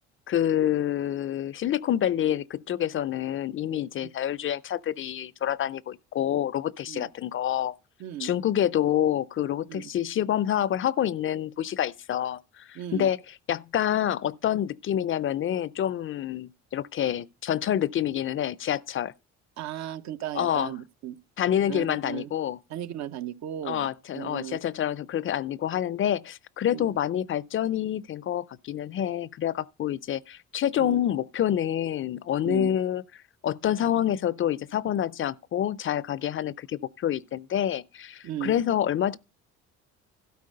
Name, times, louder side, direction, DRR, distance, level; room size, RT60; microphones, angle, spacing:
voice 1, 0.3-7.7 8.2-13.2 13.5-19.1 20.3-20.7 21.4-22.6 23.6-33.0 33.4-39.2, left 10 dB, 40° left, 0.5 m, -27 dB
voice 2, 8.0-8.3 9.7-9.9 12.7-13.1 19.6-21.2 21.7-22.3 22.7-23.9 24.1-24.6 26.7-26.9 30.8-31.0 32.4-32.7 38.2-38.6, right 11 dB, 65° right, 0.8 m, -35 dB
12.5 x 4.4 x 6.5 m
supercardioid pair, 85°, 30 cm